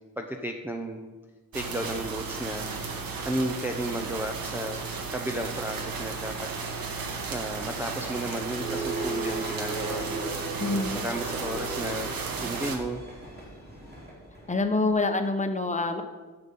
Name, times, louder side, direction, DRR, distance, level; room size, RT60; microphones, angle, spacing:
voice 1, 0.2-1.1 1.5-2.7 3.2-4.8 5.1-6.8 7.3-10.3 10.7-13.0, right 1 dB, 5° right, 2 dB, 0.5 m, -33 dB
sound 1, 1.5-12.8, right 4 dB, 85° right, 1.4 m, -34 dB
sound 2, 8.6-14.9, right 2 dB, 30° right, 3.3 m, -37 dB
voice 2, 10.6-11.0 14.5-16.0, left 3 dB, 20° left, 6 dB, 0.9 m, -26 dB
10.5 x 7.0 x 5.3 m, 1.3 s
wide cardioid pair, 145°, 35 cm